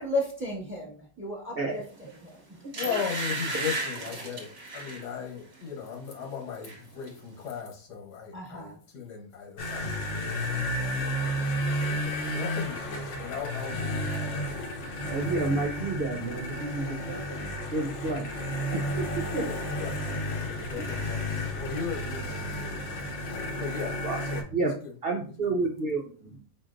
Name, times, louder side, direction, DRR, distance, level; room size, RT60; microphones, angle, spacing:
voice 1, 0.0-2.6 8.3-8.8 19.6-19.7, left 1 dB, 10° right, -1 dB, 1.2 m, -34 dB
sound 1, 2.0-2.2 2.7-5.1 5.5-5.7 6.1-6.8 7.1-7.2, right 2 dB, 35° right, 0.9 m, -34 dB
voice 2, 2.7-10.7 11.2-14.3 19.3-22.8 23.6-24.9, left 7 dB, 90° left, 1 dB, 1.7 m, -38 dB
sound 2, 9.6-24.4, equal, 55° left, 1.0 m, -32 dB
voice 3, 15.1-17.4 17.7-18.3 18.7-19.5 20.8-20.9 24.0-24.2 24.5-24.7 25.0-26.4, right 3 dB, 65° right, 1 dB, 0.6 m, -30 dB
4.6 x 4.3 x 2.5 m, 0.41 s
omnidirectional pair, 1.7 m